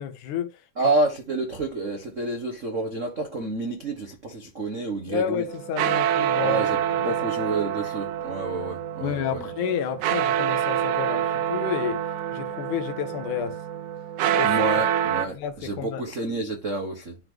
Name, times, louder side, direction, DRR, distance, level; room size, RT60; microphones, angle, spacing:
voice 1, 0.0-0.6 5.1-6.6 7.0-7.2 9.0-12.1 12.3-13.6 14.3-14.5 15.3-16.0, left 8 dB, 85° left, 2.5 m, -30 dB
voice 2, 0.8-5.4 6.4-9.5 14.4-17.2, right 2 dB, 60° right, 0.7 m, -29 dB
sound 1, 5.5-15.3, right 10 dB, 80° right, 2.0 m, -26 dB
11.5 x 3.8 x 2.9 m
omnidirectional pair, 3.4 m